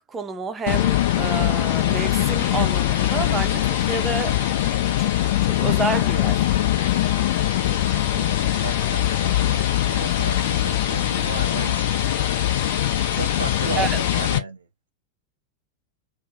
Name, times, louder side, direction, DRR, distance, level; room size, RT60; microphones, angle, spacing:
voice 1, 0.1-4.4 5.0-5.1 5.4-6.5 13.8-14.0, right 4 dB, 20° right, 0.6 m, -29 dB
sound 1, 0.7-14.4, left 12 dB, 55° left, 0.5 m, -22 dB
voice 2, 7.6-11.8 13.1-14.7, right 5 dB, 75° right, 0.3 m, -35 dB
2.6 x 2.1 x 2.5 m
figure-of-eight pair, 90°, 0 cm